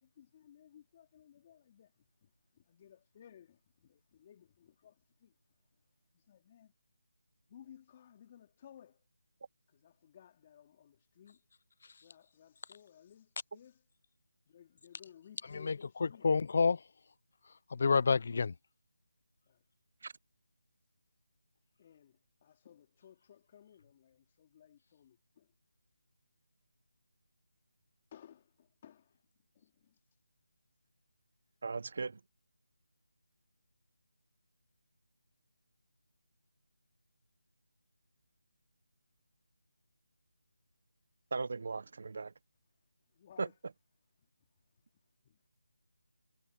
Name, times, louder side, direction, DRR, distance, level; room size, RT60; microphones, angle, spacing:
voice 1, 0.0-1.9 2.2-2.3 2.6-5.3 6.1-6.7 7.5-9.0 9.7-11.4 12.0-13.8 14.5-16.3 19.5-19.6 21.8-25.5 28.1-29.1 29.6-30.0 43.2-43.5 45.3-45.4, left 9 dB, 25° left, 3.6 m, -59 dB
voice 2, 15.5-16.8 17.7-18.5, left 5 dB, 50° left, 0.6 m, -29 dB
voice 3, 31.6-32.2 41.3-42.3 43.4-43.5, right 4 dB, 55° right, 0.9 m, -37 dB
figure-of-eight pair, 165°, 0 cm